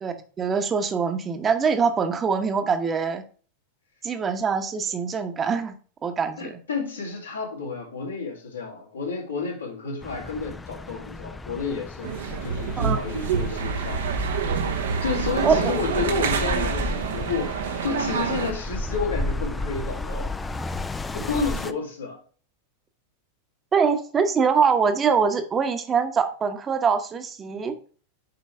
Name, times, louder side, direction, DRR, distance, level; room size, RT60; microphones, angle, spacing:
voice 1, 0.0-3.2 4.0-5.7 6.0-6.6 12.8-13.0 15.4-15.7 23.7-27.8, right 5 dB, 20° right, 1.0 m, -23 dB
voice 2, 6.4-14.1 15.0-17.5 17.8-20.3 21.1-22.2, left 4 dB, 75° left, 2.4 m, -31 dB
sound 1, 10.0-21.7, left 2 dB, 10° left, 0.4 m, -33 dB
sound 2, 12.0-18.5, right 7 dB, 60° right, 0.8 m, -27 dB
7.8 x 5.0 x 3.3 m
figure-of-eight pair, 90°, 0 cm